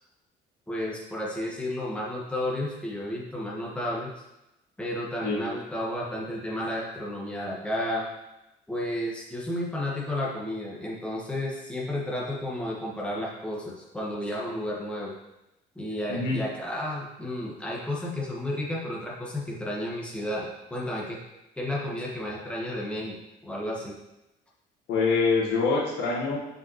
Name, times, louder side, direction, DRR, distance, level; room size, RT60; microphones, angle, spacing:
voice 1, 0.7-4.1 4.8-8.1 8.7-15.1 15.7-21.2 21.6-23.2 23.4-23.9, left 1 dB, 5° left, -4 dB, 1.7 m, -32 dB
voice 2, 16.1-16.4 24.9-26.4, left 4 dB, 80° left, -2 dB, 1.7 m, -25 dB
7.3 x 5.1 x 3.2 m, 0.93 s
cardioid pair, 110°, 17 cm